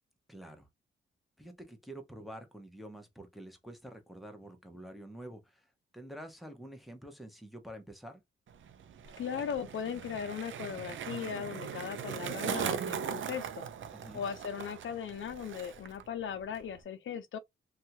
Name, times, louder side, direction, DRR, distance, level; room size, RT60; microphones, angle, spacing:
voice 1, 0.3-0.7 1.4-8.2 13.9-14.3, right 1 dB, ahead, 0.9 m, -48 dB
Skateboard, 8.5-16.0 16.3-16.8, right 8 dB, 65° right, 0.5 m, -39 dB
voice 2, 9.2-13.7 14.1-17.4, left 8 dB, 70° left, 0.5 m, -38 dB
2.7 x 2.3 x 2.7 m
cardioid pair, 70°, 21 cm